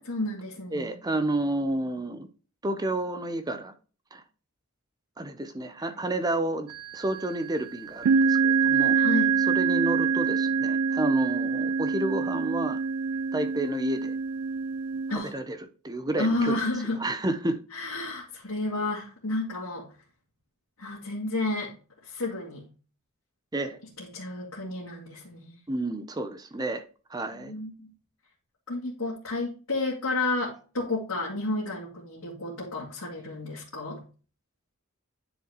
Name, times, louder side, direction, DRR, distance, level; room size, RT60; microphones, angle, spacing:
voice 1, 0.0-0.9 5.9-6.0 8.9-9.3 15.1-15.3 16.2-17.0 17.7-19.9 20.8-21.7 22.0-22.6 24.0-25.5 27.3-27.9 28.7-34.0, left 2 dB, 80° left, 2.4 m, -31 dB
voice 2, 0.7-2.3 2.6-3.7 4.1-4.2 5.2-6.7 6.9-9.0 9.5-12.8 13.3-14.2 15.1-15.6 15.8-16.6 17.0-17.6 23.5-23.8 25.7-26.8 27.1-27.5, right 1 dB, 20° right, 0.6 m, -30 dB
sound 1, 6.7-7.2 8.0-15.2, right 5 dB, 80° right, 0.3 m, -25 dB
10.0 x 4.6 x 3.0 m
head